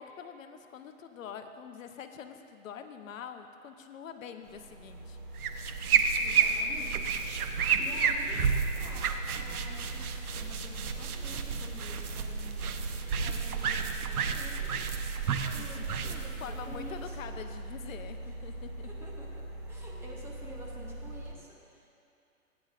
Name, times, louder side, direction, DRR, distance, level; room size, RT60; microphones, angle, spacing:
voice 1, 0.0-5.2 15.6-18.9, left 7 dB, 60° left, 7 dB, 0.8 m, -45 dB
sound 1, 4.4-21.3, right 1 dB, 35° right, 1.3 m, -42 dB
sound 2, 5.4-17.3, right 6 dB, 80° right, 0.8 m, -31 dB
voice 2, 6.2-7.5 7.8-8.4 8.7-13.0 13.2-14.7 15.4-17.2 18.2-18.5 18.8-21.9, right 1 dB, 5° right, -4 dB, 0.8 m, -49 dB
15.5 x 9.5 x 2.5 m, 2.8 s
hypercardioid pair, 135°, 44 cm